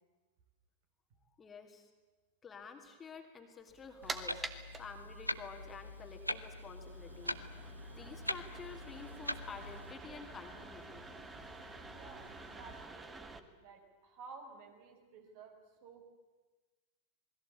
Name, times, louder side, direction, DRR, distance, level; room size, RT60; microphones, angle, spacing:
voice 1, 1.2-1.9 2.4-4.4 4.8-7.4 7.9-11.1, left 5 dB, 20° left, 4 dB, 2.9 m, -50 dB
sound 1, 3.7-13.4, right 3 dB, 15° right, 1.9 m, -49 dB
Clock, 4.0-9.9, left 1 dB, 90° left, 1.0 m, -42 dB
sound 2, 7.1-12.9, equal, 90° right, 1.9 m, -58 dB
voice 2, 11.9-16.0, right 4 dB, 50° right, 4 dB, 5.5 m, -54 dB
27.5 x 21.0 x 8.6 m, 1.3 s
figure-of-eight pair, 90°, 0 cm